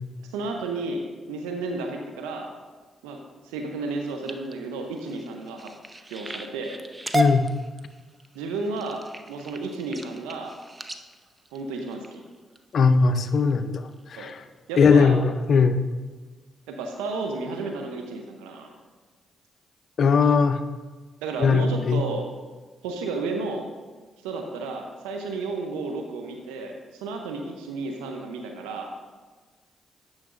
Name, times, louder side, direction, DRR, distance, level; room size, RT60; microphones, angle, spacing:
voice 1, 0.3-2.5 3.0-5.7 6.1-6.8 8.3-10.5 11.5-12.2 14.1-14.3 14.7-15.2 16.7-18.7 21.2-22.2 22.8-23.7 24.2-29.0, right 3 dB, 85° right, 3 dB, 0.6 m, -32 dB
sound 1, 3.9-12.6 13.2-13.5 13.9-14.3 14.7-14.8 15.2-15.3, right 1 dB, 25° right, 0.6 m, -34 dB
voice 2, 7.1-7.5 12.7-14.4 14.8-15.8 20.0-20.6 21.4-22.0, left 5 dB, 60° left, 10 dB, 0.5 m, -20 dB
10.0 x 6.4 x 2.5 m, 1.4 s
hypercardioid pair, 45°, 0 cm